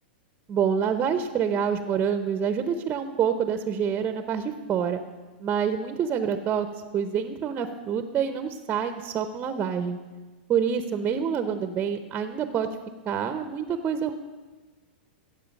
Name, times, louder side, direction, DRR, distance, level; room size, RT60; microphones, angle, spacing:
voice 1, 0.5-5.0 5.4-6.7 6.9-10.0 10.5-12.7 13.0-14.1, right 7 dB, 25° right, 9 dB, 0.8 m, -27 dB
14.5 x 8.1 x 5.3 m, 1.3 s
hypercardioid pair, 125°, 6 cm